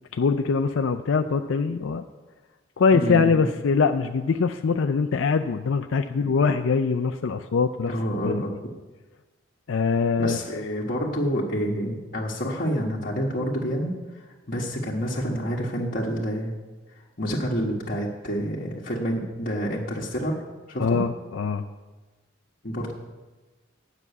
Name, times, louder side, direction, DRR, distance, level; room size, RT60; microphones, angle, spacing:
voice 1, 0.1-2.0 2.8-7.9 8.2-8.4 9.7-10.4 20.8-21.6, left 5 dB, 90° left, 7 dB, 0.4 m, -23 dB
voice 2, 2.9-3.5 7.9-8.5 10.2-16.5 17.2-20.3 20.7-21.0 22.6-22.9, equal, 50° left, -5 dB, 1.3 m, -28 dB
10.0 x 6.0 x 8.2 m, 1.2 s
head